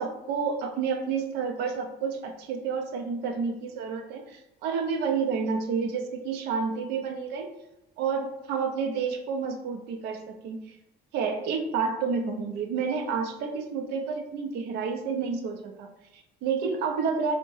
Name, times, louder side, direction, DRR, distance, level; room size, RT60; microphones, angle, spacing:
voice 1, 0.0-7.5 8.0-10.8 11.1-17.3, right 5 dB, 80° right, 5 dB, 0.5 m, -30 dB
3.4 x 2.1 x 3.1 m, 0.89 s
cardioid pair, 110°, 17 cm